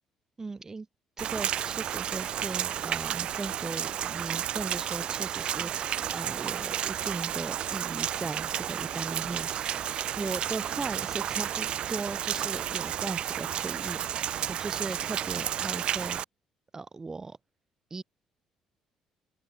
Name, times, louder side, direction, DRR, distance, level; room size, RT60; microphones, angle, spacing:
voice 1, 0.4-0.9 1.2-9.9 10.2-16.2 16.7-17.4 17.9-18.0, right 4 dB, 25° right, 1.7 m, -38 dB
Rain, 1.2-16.2, right 10 dB, 50° right, 0.6 m, -32 dB
open air
figure-of-eight pair, 50°, 2 cm